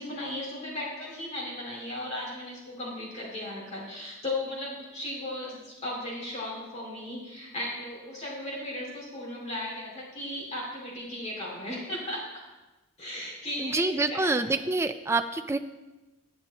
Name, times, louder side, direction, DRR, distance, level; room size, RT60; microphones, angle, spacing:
voice 1, 0.0-12.2 13.0-14.5, left 1 dB, 30° left, -4 dB, 2.5 m, -36 dB
voice 2, 13.6-15.6, right 3 dB, 15° right, 9 dB, 0.3 m, -27 dB
9.7 x 9.0 x 4.0 m, 1.1 s
head